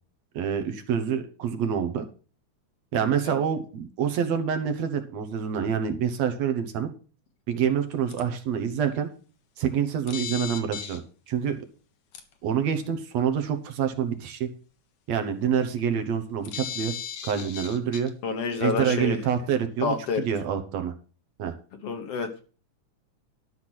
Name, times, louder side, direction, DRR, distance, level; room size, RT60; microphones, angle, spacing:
voice 1, 0.3-2.0 2.9-6.9 7.5-9.1 9.6-11.0 11.3-11.6 12.4-14.5 15.1-16.9 17.2-18.1 18.6-19.9 20.2-20.9 21.4-21.5, right 8 dB, 65° right, 7 dB, 2.2 m, -27 dB
sound 1, 8.1-8.2 10.1-11.0 12.1-12.2 16.4-18.1, left 7 dB, 75° left, 2.7 m, -35 dB
voice 2, 18.2-19.2 19.8-20.3 21.8-22.4, left 5 dB, 60° left, 6 dB, 1.9 m, -28 dB
12.5 x 5.8 x 6.1 m, 0.38 s
omnidirectional pair, 3.4 m